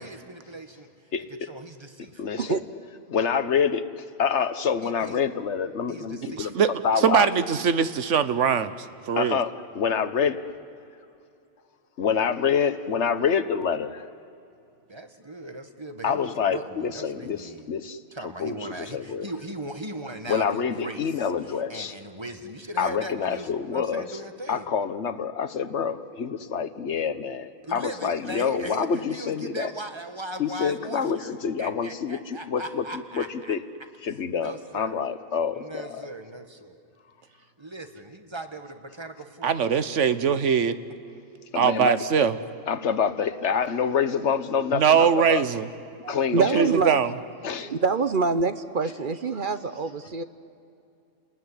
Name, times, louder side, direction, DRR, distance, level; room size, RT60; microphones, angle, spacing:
voice 1, 0.0-0.9 1.5-2.3 4.8-5.2 5.9-6.7 14.9-17.7 18.1-24.7 27.6-31.3 31.6-33.5 34.0-35.0 35.5-36.8 37.6-39.7, right 1 dB, 25° right, 7 dB, 1.5 m, -39 dB
voice 2, 2.2-2.6 3.1-3.8 4.2-6.5 6.8-7.3 9.2-9.5 9.8-10.4 12.0-14.0 16.0-18.0 18.4-19.3 20.3-21.9 22.8-24.0 24.5-29.7 30.4-32.8 33.1-33.6 34.0-36.1 41.5-41.9 42.7-45.4 46.1-46.6 47.4-47.7, left 6 dB, 70° left, 13 dB, 1.3 m, -27 dB
voice 3, 6.4-6.7 7.0-8.7 9.1-9.4 39.4-40.8 41.5-42.4 44.7-45.7 46.5-47.1, right 7 dB, 85° right, 12 dB, 1.4 m, -21 dB
voice 4, 46.0-47.0 47.6-50.2, right 4 dB, 50° right, 11 dB, 0.9 m, -25 dB
30.0 x 20.0 x 9.9 m, 2.6 s
omnidirectional pair, 1.2 m